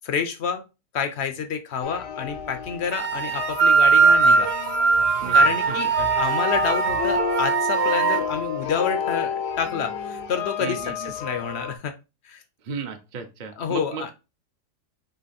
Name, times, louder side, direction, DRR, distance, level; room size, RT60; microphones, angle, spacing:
voice 1, 0.0-0.6 0.9-4.5 5.3-11.9 12.2-12.4 13.6-14.1, left 6 dB, 65° left, 8 dB, 0.6 m, -29 dB
sound 1, 1.8-11.8, left 7 dB, 85° left, 1.3 m, -30 dB
sound 2, 2.9-8.2, right 5 dB, 85° right, 1.2 m, -20 dB
voice 2, 5.2-6.1 10.6-11.1 12.6-14.1, right 5 dB, 55° right, 4 dB, 0.5 m, -35 dB
3.9 x 3.1 x 4.1 m, 0.28 s
omnidirectional pair, 1.7 m